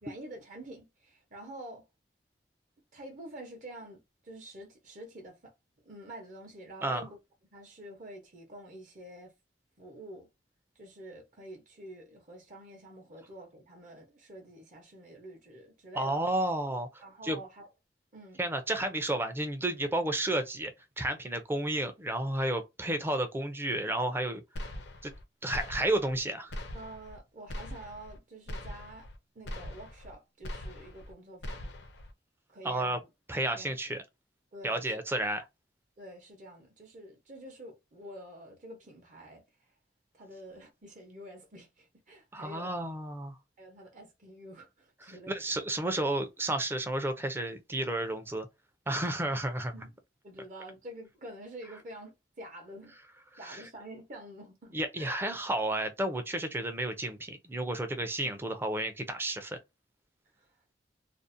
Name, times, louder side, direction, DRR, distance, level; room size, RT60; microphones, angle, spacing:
voice 1, 0.0-1.9 2.9-5.5 5.8-7.2 7.5-9.3 9.8-10.3 10.8-16.2 17.0-17.7 18.1-18.4 26.7-29.1 29.3-31.6 32.5-33.0 33.6-33.7 34.5-34.9 36.0-39.7 40.1-42.7 43.6-45.4 49.7-49.9 50.2-52.9 53.4-55.2 60.4-60.5, right 1 dB, 45° right, 0.7 m, -48 dB
voice 2, 15.9-17.4 18.4-24.4 25.0-25.1 25.4-26.6 32.6-33.0 33.3-34.0 34.6-35.5 42.3-43.4 45.0-48.5 48.9-49.7 53.4-53.6 54.7-59.6, right 1 dB, 15° right, 0.4 m, -32 dB
sound 1, 24.6-25.2 25.5-26.2 26.5-27.2 27.5-28.2 28.5-29.2 29.5-30.2 30.4-31.1 31.4-32.1, left 1 dB, 70° left, 0.5 m, -41 dB
2.5 x 2.0 x 2.5 m
head